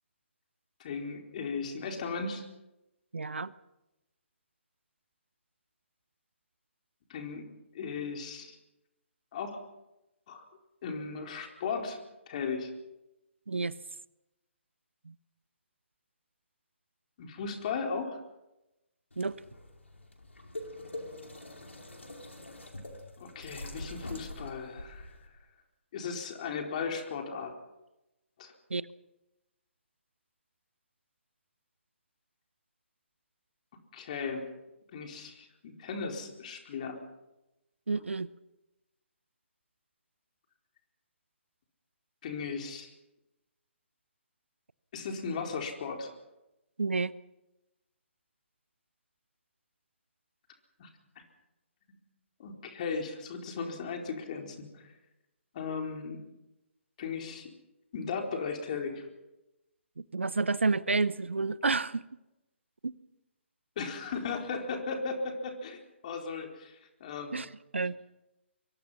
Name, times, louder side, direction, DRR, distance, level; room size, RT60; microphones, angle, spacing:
voice 1, 0.8-2.4 7.1-7.4 7.7-8.6 9.3-9.6 10.3-10.4 10.8-12.0 12.3-12.7 17.2-18.2 23.2-25.2 25.9-27.5 28.4-28.5 33.9-34.4 34.9-37.0 38.0-38.1 42.2-42.9 44.9-46.1 50.8-50.9 52.4-54.9 55.5-56.2 57.0-57.5 57.9-59.1 63.8-67.4, left 5 dB, 35° left, 3 dB, 4.4 m, -36 dB
voice 2, 3.1-3.5 13.5-13.7 15.1-15.2 19.2-19.3 28.7-28.8 37.9-38.3 46.8-47.1 60.1-62.0 62.8-62.9 67.3-68.0, right 3 dB, 70° right, 18 dB, 0.8 m, -30 dB
sound 1, 19.1-25.3, left 1 dB, 75° left, 5.0 m, -44 dB
24.0 x 23.5 x 5.8 m, 0.95 s
figure-of-eight pair, 135°, 7 cm